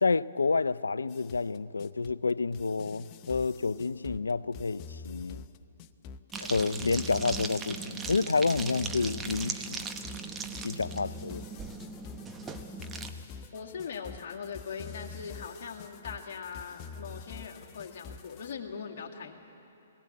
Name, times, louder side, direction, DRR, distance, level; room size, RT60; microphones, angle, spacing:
voice 1, 0.0-5.4 6.4-9.8 10.6-11.4, left 4 dB, 85° left, 0.4 m, -29 dB
sound 1, 1.1-18.5, left 5 dB, 35° left, 0.7 m, -46 dB
sound 2, 6.3-13.1, right 4 dB, 15° right, 1.1 m, -39 dB
voice 2, 13.5-19.4, left 6 dB, 55° left, 2.1 m, -40 dB
20.5 x 17.5 x 8.5 m
hypercardioid pair, 130°, 0 cm